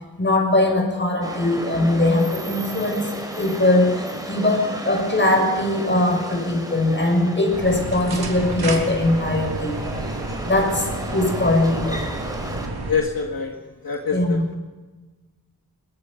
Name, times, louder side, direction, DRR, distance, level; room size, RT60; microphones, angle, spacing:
voice 1, 0.2-3.1 3.4-3.9 4.3-9.8 10.5-12.1 14.1-14.4, left 1 dB, 30° left, 3 dB, 6.3 m, -21 dB
sound 1, 1.2-12.7, right 1 dB, 10° right, 4.6 m, -33 dB
voice 2, 4.4-4.7 12.9-13.6 13.8-14.5, left 5 dB, 70° left, 2 dB, 2.1 m, -26 dB
sound 2, 7.5-12.9, right 2 dB, 90° right, 3.7 m, -30 dB
22.5 x 22.0 x 5.3 m, 1.3 s
wide cardioid pair, 90°, 37 cm